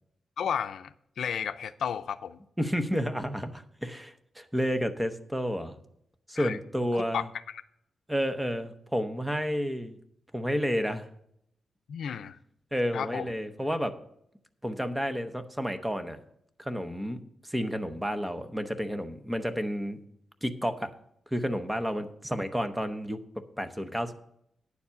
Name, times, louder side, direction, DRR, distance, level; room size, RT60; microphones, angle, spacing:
voice 1, 0.4-2.4 6.4-6.6 6.9-7.6 11.9-12.4 12.9-13.3, left 8 dB, 75° left, 12 dB, 0.5 m, -33 dB
voice 2, 2.6-5.8 6.3-7.3 8.1-10.0 10.3-11.1 12.7-14.0 14.6-16.2 16.6-17.2 17.5-20.0 20.4-20.9 21.3-23.2 23.6-24.1, equal, 5° right, 8 dB, 0.7 m, -31 dB
9.6 x 7.2 x 5.6 m, 0.73 s
wide cardioid pair, 150°, 0 cm